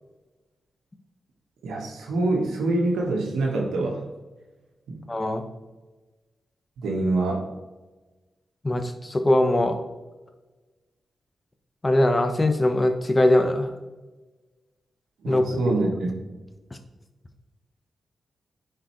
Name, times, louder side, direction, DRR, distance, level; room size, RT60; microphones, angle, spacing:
voice 1, 1.6-4.0 4.9-5.0 6.8-7.5 15.2-16.1, right 2 dB, 85° right, 0 dB, 1.5 m, -25 dB
voice 2, 5.1-5.4 8.6-9.8 11.8-13.7 15.2-15.4, left 1 dB, 30° left, 6 dB, 1.1 m, -21 dB
10.0 x 4.7 x 3.2 m, 1.2 s
supercardioid pair, 45°, 0 cm